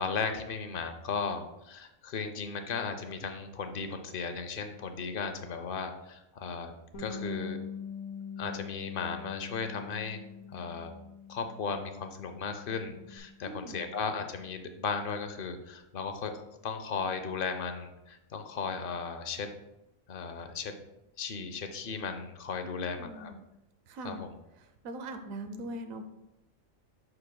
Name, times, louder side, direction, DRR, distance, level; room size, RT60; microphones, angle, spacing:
voice 1, 0.0-6.7 7.0-7.6 8.4-10.2 10.5-10.9 11.3-16.3 16.6-19.5 20.1-20.8 21.2-23.3 24.0-24.3, left 5 dB, 55° left, 7 dB, 0.7 m, -36 dB
Bass guitar, 6.9-13.2, left 6 dB, 75° left, 1.3 m, -43 dB
voice 2, 13.4-14.0 22.6-23.4 23.9-24.2 24.5-26.0, right 1 dB, 75° right, 7 dB, 1.1 m, -41 dB
7.8 x 5.8 x 2.2 m, 0.91 s
omnidirectional pair, 1.4 m